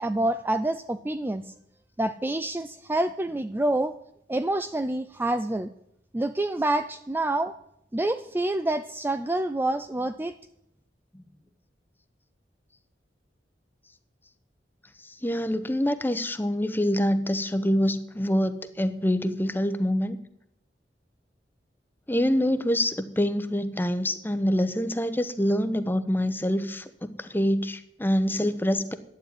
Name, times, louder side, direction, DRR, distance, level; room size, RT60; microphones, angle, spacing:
voice 1, 0.0-1.5 2.0-3.9 4.3-5.7 6.1-7.5 7.9-10.3, right 1 dB, 10° right, 10 dB, 0.4 m, -27 dB
voice 2, 15.2-20.2 22.1-29.0, equal, 10° left, 10 dB, 0.9 m, -25 dB
12.0 x 9.7 x 8.9 m, 0.78 s
head